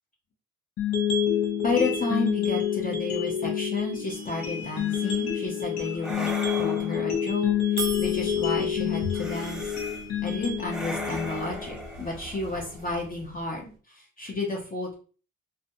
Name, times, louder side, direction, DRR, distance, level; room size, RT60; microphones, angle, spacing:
sound 1, 0.8-12.8, left 8 dB, 65° left, 0.6 m, -28 dB
voice 1, 1.6-6.3 6.6-9.7 10.2-14.9, left 3 dB, 30° left, -1 dB, 0.7 m, -31 dB
sound 2, 4.1-6.1 7.8-13.8, right 3 dB, 90° right, 0.6 m, -42 dB
sound 3, 4.8-5.1 6.0-7.2 9.1-10.0 10.7-12.9, right 1 dB, ahead, 0.4 m, -39 dB
2.5 x 2.2 x 2.6 m, 0.39 s
cardioid pair, 90°, 30 cm